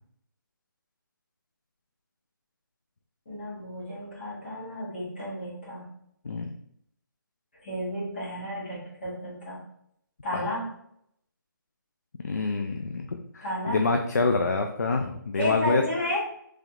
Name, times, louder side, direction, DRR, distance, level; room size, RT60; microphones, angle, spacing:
voice 1, 3.2-5.9 7.6-9.6 10.2-10.7 13.4-14.0 15.3-16.2, left 1 dB, 30° left, -7 dB, 1.4 m, -32 dB
voice 2, 12.2-15.8, left 3 dB, 50° left, 4 dB, 0.4 m, -27 dB
3.7 x 3.2 x 2.9 m, 0.71 s
hypercardioid pair, 175°, 12 cm